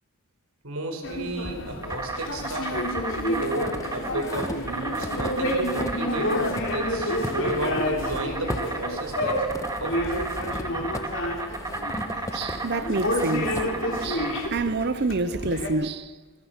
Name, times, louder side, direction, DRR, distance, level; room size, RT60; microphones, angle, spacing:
voice 1, 0.6-3.0 3.3-9.5 9.8-10.5, right 2 dB, 75° right, 4.7 m, -33 dB
sound 1, 1.0-15.7, left 1 dB, 60° left, 3.6 m, -30 dB
Insect, 1.5-14.5, right 2 dB, 15° right, 1.9 m, -34 dB
sound 2, 3.0-6.0 6.3-14.5, left 1 dB, 15° left, 1.1 m, -38 dB
voice 2, 12.3-13.6 14.0-16.1, right 3 dB, 45° right, 0.7 m, -28 dB
25.5 x 22.5 x 5.9 m
head